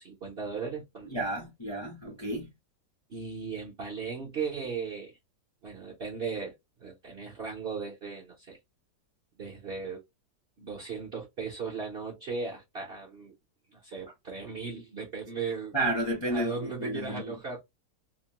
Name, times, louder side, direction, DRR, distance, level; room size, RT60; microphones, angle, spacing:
voice 1, 0.0-1.2 3.1-5.2 5.6-6.5 6.8-8.6 9.4-10.0 10.6-13.3 13.7-15.8 16.3-17.6, right 5 dB, 50° right, 0.7 m, -37 dB
voice 2, 1.0-2.5 15.7-17.3, right 1 dB, 25° left, 0.7 m, -31 dB
2.9 x 2.0 x 2.8 m
omnidirectional pair, 1.8 m